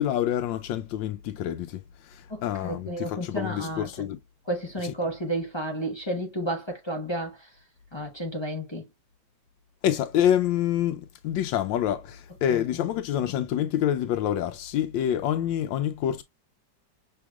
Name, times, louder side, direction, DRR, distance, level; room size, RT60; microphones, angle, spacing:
voice 1, 0.0-4.2 4.8-4.9 9.8-16.2, left 10 dB, 85° left, 1.3 m, -27 dB
voice 2, 2.3-3.9 4.5-7.3 7.9-8.8, right 1 dB, 25° left, 0.7 m, -31 dB
5.9 x 3.4 x 2.3 m
omnidirectional pair, 2.0 m